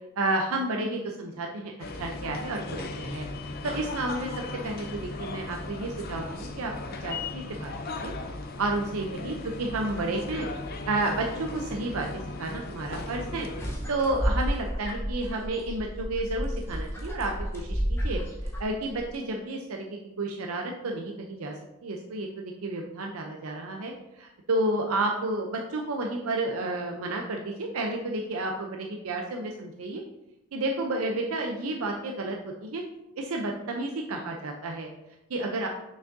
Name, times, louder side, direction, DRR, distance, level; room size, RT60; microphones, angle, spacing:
voice 1, 0.2-1.7 2.0-3.2 3.6-4.3 4.6-6.7 7.0-7.7 8.0-8.1 8.6-10.5 10.9-12.1 12.4-13.5 13.9-18.2 18.6-19.9 20.2-30.0 30.5-32.8 33.2-34.9 35.3-35.7, right 2 dB, 85° right, 2 dB, 0.6 m, -31 dB
sound 1, 1.8-13.7, left 3 dB, 45° left, 0.5 m, -37 dB
sound 2, 13.6-19.2, equal, 10° left, 1.2 m, -31 dB
6.2 x 6.0 x 2.6 m, 0.91 s
head